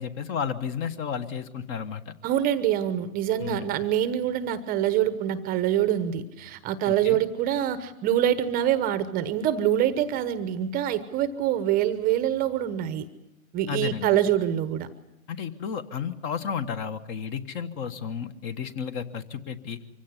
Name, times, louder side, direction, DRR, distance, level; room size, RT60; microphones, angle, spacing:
voice 1, 0.0-2.1 3.4-3.7 6.9-7.2 13.7-14.1 15.3-19.8, left 7 dB, 30° left, 12 dB, 1.4 m, -32 dB
voice 2, 2.2-13.1 13.5-14.9, right 11 dB, 20° right, 12 dB, 1.0 m, -25 dB
24.5 x 16.5 x 9.8 m, 0.93 s
hypercardioid pair, 135°, 41 cm